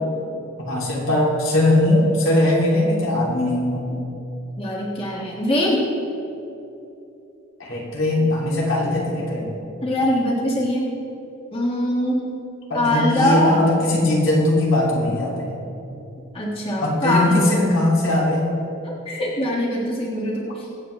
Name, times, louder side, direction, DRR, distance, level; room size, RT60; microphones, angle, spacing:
voice 1, 0.6-3.9 7.6-9.5 12.7-15.5 16.8-18.5, left 1 dB, 70° left, -4 dB, 3.0 m, -20 dB
voice 2, 4.6-5.8 9.8-10.9 11.5-12.3 12.7-13.7 16.3-17.4 19.1-20.5, left 1 dB, 30° left, -4 dB, 1.7 m, -22 dB
24.0 x 8.0 x 3.3 m, 2.9 s
head